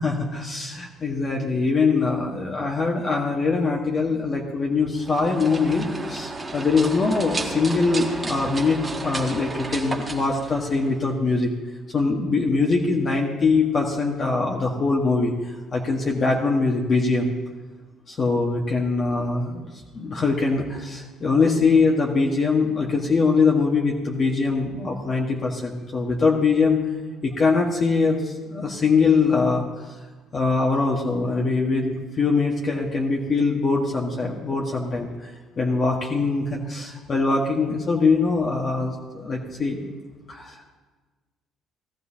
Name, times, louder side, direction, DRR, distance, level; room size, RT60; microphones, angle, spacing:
voice 1, 0.0-11.5 11.9-17.3 18.1-19.6 19.9-26.8 27.2-29.9 30.3-39.8 40.3-40.7, left 4 dB, 35° left, -1 dB, 1.5 m, -22 dB
sound 1, 5.0-11.1, right 2 dB, 20° right, 1.6 m, -33 dB
17.5 x 13.5 x 2.9 m, 1.3 s
cardioid pair, 110°, 0 cm